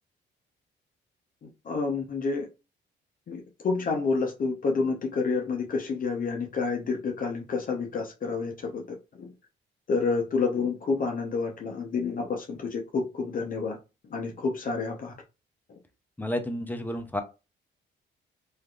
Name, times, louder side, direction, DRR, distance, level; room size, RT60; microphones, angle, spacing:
voice 1, 1.7-2.5 3.3-9.3 9.9-13.8 14.1-15.1, left 4 dB, 45° left, 2 dB, 0.7 m, -29 dB
voice 2, 16.2-17.2, left 1 dB, 10° left, 6 dB, 0.6 m, -31 dB
3.2 x 2.5 x 2.3 m, 0.28 s
cardioid pair, 90°, 20 cm